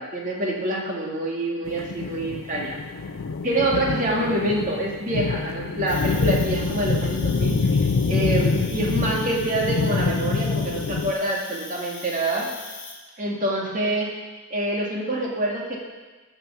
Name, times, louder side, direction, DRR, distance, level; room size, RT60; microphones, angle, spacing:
voice 1, 0.0-2.8 3.4-12.5 13.2-14.1 14.5-15.8, right 1 dB, 40° right, -2 dB, 2.3 m, -26 dB
sound 1, 1.7-11.1, left 4 dB, 85° left, 0.5 m, -25 dB
Cricket, 5.9-12.9, left 3 dB, 40° left, 3.1 m, -41 dB
13.0 x 6.0 x 7.0 m, 1.3 s
head